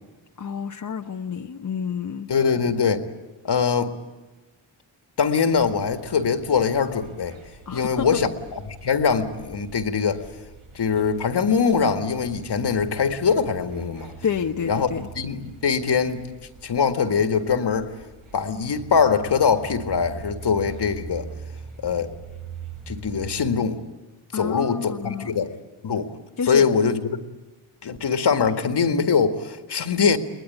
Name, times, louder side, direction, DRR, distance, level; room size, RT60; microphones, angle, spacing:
voice 1, 0.4-2.3 7.7-8.2 14.2-15.1 24.3-25.3 26.4-26.7, left 6 dB, 40° left, 3 dB, 0.9 m, -29 dB
voice 2, 2.3-3.1 3.4-3.9 5.2-7.3 7.7-10.2 10.8-14.1 14.7-14.9 15.2-16.3 16.6-17.9 18.3-21.2 21.8-22.1 22.9-23.8 24.3-25.5 25.8-26.1 26.5-27.2 27.8-30.2, left 6 dB, 60° left, 7 dB, 1.9 m, -22 dB
sound 1, 5.5-23.5, right 6 dB, 90° right, 5.7 m, -43 dB
23.0 x 20.0 x 9.9 m, 1.1 s
cardioid pair, 75°, 46 cm